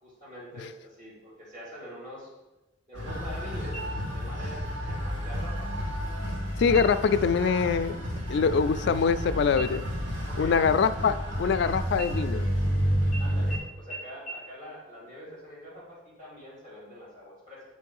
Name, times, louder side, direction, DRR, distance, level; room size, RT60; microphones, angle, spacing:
voice 1, 0.0-2.3 2.9-5.7 6.9-7.1 10.3-10.7 13.2-17.6, equal, 40° right, -7 dB, 2.6 m, -44 dB
sound 1, 2.9-13.6, equal, 75° right, 1.7 m, -31 dB
sound 2, 3.7-4.4 4.8-4.9 5.4-6.0 6.7-7.2 7.6-7.8 8.1-9.2 9.6-11.6 11.9-12.7 13.1-13.2 13.5-13.6 13.9-14.0 14.3-14.4, right 3 dB, 5° right, 1.3 m, -43 dB
voice 2, 6.6-8.0 8.3-9.8 10.4-12.5, left 6 dB, 65° left, 12 dB, 0.3 m, -24 dB
7.6 x 3.1 x 5.4 m, 1.0 s
head